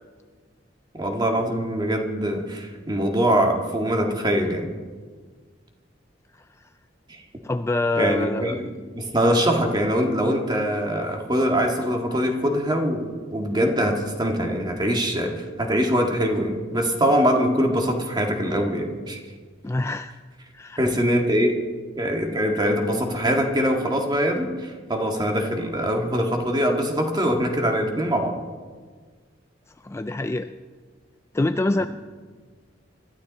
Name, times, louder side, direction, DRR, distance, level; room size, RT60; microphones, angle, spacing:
voice 1, 0.9-4.7 7.1-7.2 8.0-19.2 20.8-21.6 22.0-28.4, equal, 25° right, 2 dB, 2.0 m, -23 dB
voice 2, 7.4-8.6 19.6-20.1 20.5-20.8 29.8-30.5 31.3-31.9, left 2 dB, 15° left, 9 dB, 0.3 m, -25 dB
25.0 x 12.5 x 4.2 m, 1.5 s
head